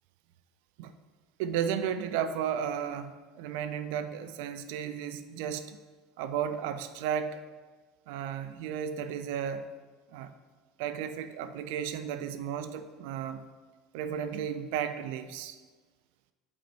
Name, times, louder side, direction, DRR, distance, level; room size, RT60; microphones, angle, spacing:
voice 1, 1.4-5.8 6.2-7.4 8.1-9.6 10.1-10.3 10.8-13.4 13.9-15.6, right 8 dB, 70° right, 10 dB, 0.4 m, -34 dB
8.2 x 5.4 x 3.2 m, 1.4 s
hypercardioid pair, 75°, 0 cm